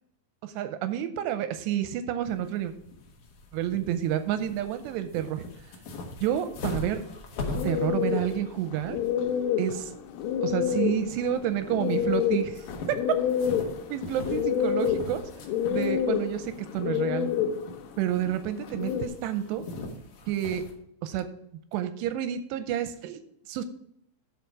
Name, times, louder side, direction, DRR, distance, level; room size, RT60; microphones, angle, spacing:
voice 1, 0.4-2.7 3.5-5.4 6.2-7.0 7.6-9.0 9.6-9.9 10.4-13.0 13.9-15.2 15.7-17.3 18.0-19.6 20.3-20.6 21.0-21.3 21.7-23.2 23.5-23.6, right 10 dB, 80° right, 10 dB, 2.6 m, -29 dB
sound 1, 2.2-20.7, left 2 dB, 65° left, 2.1 m, -42 dB
sound 2, 7.6-19.1, left 8 dB, 85° left, 3.2 m, -28 dB
11.5 x 4.9 x 4.6 m, 0.72 s
omnidirectional pair, 5.2 m